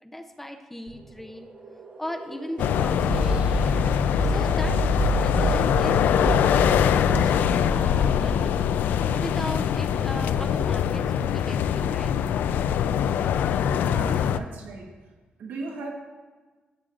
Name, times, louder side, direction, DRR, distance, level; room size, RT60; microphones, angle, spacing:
voice 1, 0.0-1.5 2.0-3.9 4.2-8.6 9.1-12.1 14.2-14.4, left 1 dB, 10° left, 6 dB, 0.5 m, -38 dB
sound 1, 0.9-9.0, equal, 40° right, 0.7 m, -29 dB
sound 2, 2.6-14.4, left 8 dB, 85° left, 0.3 m, -23 dB
voice 2, 13.8-14.9 15.4-15.9, right 3 dB, 85° right, 1 dB, 1.1 m, -37 dB
15.0 x 7.2 x 2.4 m, 1.3 s
cardioid pair, 130°, 3 cm